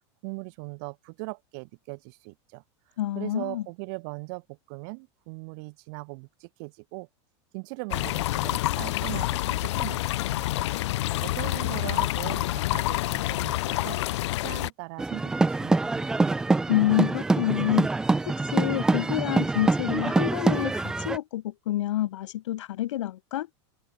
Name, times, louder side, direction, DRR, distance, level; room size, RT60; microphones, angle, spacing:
voice 1, 0.2-2.6 3.1-7.1 7.5-10.7 11.0-14.0 14.4-16.3, right 34 dB, 45° right, 5.9 m, -40 dB
voice 2, 3.0-3.6 16.7-17.9 18.4-23.5, left 14 dB, 90° left, 2.2 m, -28 dB
sound 1, 7.9-14.7, left 16 dB, 70° left, 0.6 m, -28 dB
sound 2, 15.0-21.2, right 3 dB, 5° right, 0.4 m, -25 dB
open air
supercardioid pair, 170°, 15 cm